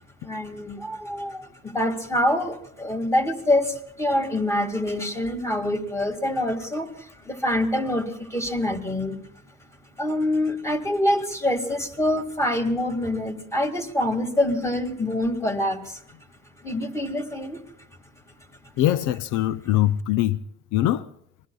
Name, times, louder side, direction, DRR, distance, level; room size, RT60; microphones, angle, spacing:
voice 1, 0.2-9.2 10.0-16.0 16.6-17.6, left 1 dB, 10° left, 2.0 m, -25 dB
voice 2, 18.8-20.4 20.7-21.1, left 13 dB, 90° left, 0.5 m, -22 dB
27.0 x 20.5 x 2.3 m
cardioid pair, 90°, 30 cm